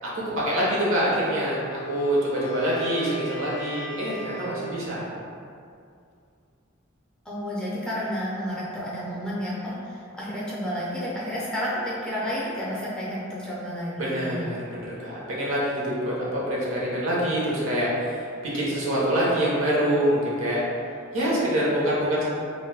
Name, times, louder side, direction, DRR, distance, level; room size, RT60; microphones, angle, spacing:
voice 1, 0.0-5.1 14.0-20.6 21.1-22.2, equal, 70° right, -6 dB, 0.7 m, -25 dB
Wind instrument woodwind instrument, 1.3-4.8, right 2 dB, 85° left, 0.3 m, -37 dB
voice 2, 7.3-14.5, equal, 5° left, -8 dB, 0.4 m, -31 dB
2.5 x 2.1 x 3.2 m, 2.4 s
head